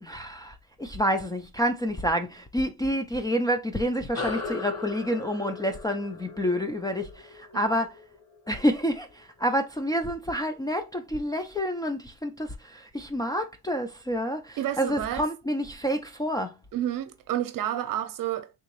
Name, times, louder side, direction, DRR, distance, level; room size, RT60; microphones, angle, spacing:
voice 1, 0.0-8.0 8.5-16.6, equal, 10° left, 0.3 m, -28 dB
sound 1, 4.1-9.0, left 4 dB, 45° left, 1.2 m, -38 dB
voice 2, 14.6-15.2 16.7-18.5, right 12 dB, 65° right, 0.7 m, -30 dB
3.6 x 2.9 x 2.9 m
cardioid pair, 125°, 36 cm